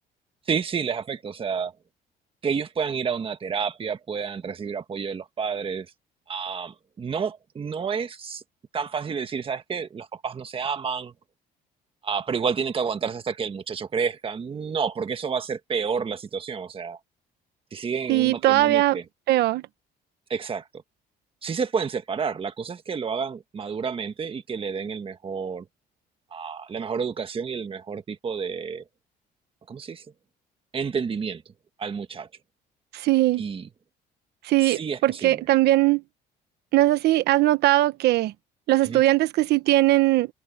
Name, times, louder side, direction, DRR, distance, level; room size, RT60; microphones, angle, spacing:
voice 1, 0.5-1.7 2.4-5.9 6.3-8.4 8.7-11.1 12.0-17.0 17.7-19.0 20.3-20.7 21.4-25.6 26.3-28.8 29.7-30.0 30.7-31.4 31.8-32.3 33.4-33.7 34.6-35.4 38.8-39.0, right 6 dB, 30° right, 1.6 m, -30 dB
voice 2, 18.1-19.0 19.3-19.6 32.9-33.4 34.4-36.0 36.7-38.3 38.7-40.3, right 16 dB, 75° right, 1.1 m, -20 dB
cardioid pair, 110°, 17 cm